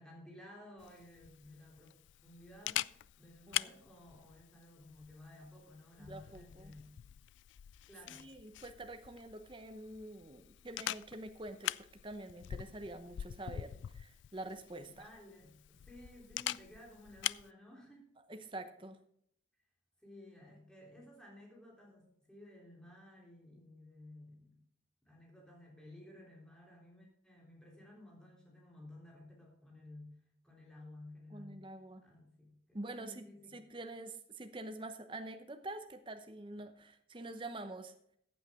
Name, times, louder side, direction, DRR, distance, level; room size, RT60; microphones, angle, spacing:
voice 1, 0.0-7.1 7.9-8.3 15.0-18.1 20.0-24.6 25.0-30.1 30.4-31.7 32.0-33.6, left 1 dB, 5° left, -2 dB, 3.5 m, -55 dB
Camera, 0.8-17.5, left 13 dB, 75° left, 0.3 m, -44 dB
voice 2, 6.0-6.7 8.1-15.1 18.3-19.0 31.3-32.0 32.7-33.3 33.5-37.9, right 2 dB, 25° right, 7 dB, 0.8 m, -46 dB
15.0 x 8.6 x 3.7 m, 0.70 s
head